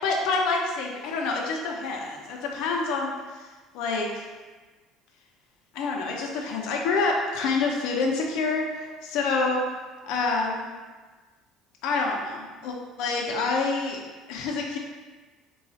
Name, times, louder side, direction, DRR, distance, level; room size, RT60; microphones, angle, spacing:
voice 1, 0.0-3.5 3.7-4.3 5.7-9.6 10.0-10.7 11.8-14.8, left 3 dB, 65° left, 0 dB, 0.5 m, -27 dB
4.0 x 2.3 x 4.0 m, 1.3 s
cardioid pair, 165°, 0 cm